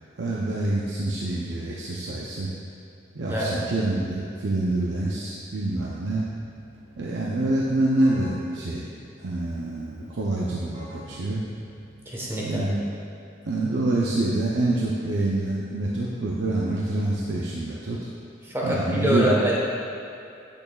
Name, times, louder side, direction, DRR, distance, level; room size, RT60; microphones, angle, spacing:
voice 1, 0.2-2.5 3.1-6.2 7.0-8.8 9.2-11.4 12.4-12.9 13.4-18.1 18.6-19.4, right 2 dB, 65° right, -4 dB, 0.6 m, -26 dB
Keyboard (musical), 5.6-12.4, right 1 dB, 30° right, 1.4 m, -48 dB
voice 2, 12.0-12.6 18.4-19.6, right 1 dB, 15° right, -5 dB, 1.1 m, -25 dB
8.0 x 6.9 x 2.3 m, 2.6 s
head